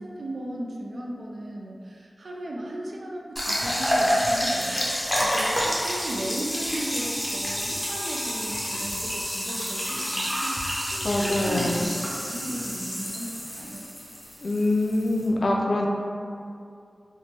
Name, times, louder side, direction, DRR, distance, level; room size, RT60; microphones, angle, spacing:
voice 1, 0.0-11.9 12.2-13.8, right 1 dB, 75° right, -2 dB, 0.3 m, -36 dB
sound 1, 3.4-15.3, equal, 10° left, 0.6 m, -28 dB
voice 2, 11.0-11.9 14.4-15.9, left 2 dB, 70° left, -1 dB, 0.3 m, -24 dB
3.1 x 2.1 x 2.8 m, 2.4 s
wide cardioid pair, 80°, 0 cm